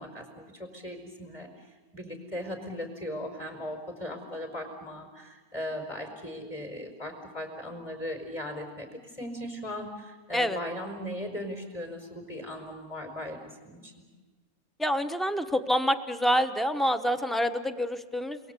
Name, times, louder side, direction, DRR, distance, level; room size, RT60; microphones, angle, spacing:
voice 1, 0.0-1.7 1.9-14.0, left 1 dB, 20° left, 5 dB, 4.9 m, -38 dB
voice 2, 14.8-18.4, equal, ahead, 10 dB, 0.4 m, -27 dB
30.0 x 22.5 x 8.2 m, 1.3 s
omnidirectional pair, 1.8 m